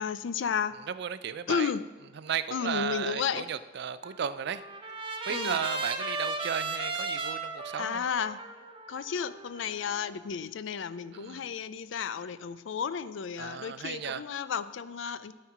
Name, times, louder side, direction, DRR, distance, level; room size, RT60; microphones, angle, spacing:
voice 1, 0.0-0.8 1.5-1.9 2.5-3.5 5.3-5.6 7.8-8.4 8.9-15.3, left 7 dB, 70° left, 14 dB, 0.4 m, -33 dB
voice 2, 0.9-1.7 2.2-4.6 5.3-8.0 11.1-11.5 13.4-14.2, right 7 dB, 60° right, 14 dB, 0.4 m, -34 dB
Trumpet, 4.0-10.2, right 3 dB, 25° right, 0.7 m, -36 dB
12.5 x 4.5 x 5.8 m, 1.4 s
head